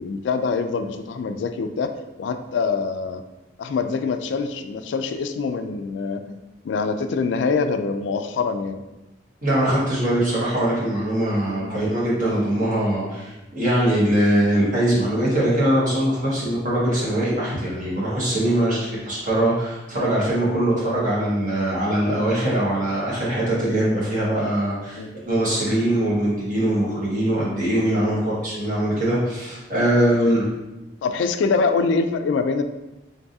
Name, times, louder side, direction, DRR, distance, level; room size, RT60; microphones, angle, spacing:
voice 1, 0.0-1.9 2.2-3.2 3.6-6.4 6.6-8.8 11.6-11.8 25.0-25.1 28.0-28.2 30.1-30.3 31.0-32.6, left 4 dB, 75° left, 8 dB, 0.3 m, -24 dB
voice 2, 9.4-30.5, right 1 dB, 45° right, -7 dB, 1.5 m, -22 dB
3.8 x 3.5 x 2.7 m, 1.0 s
head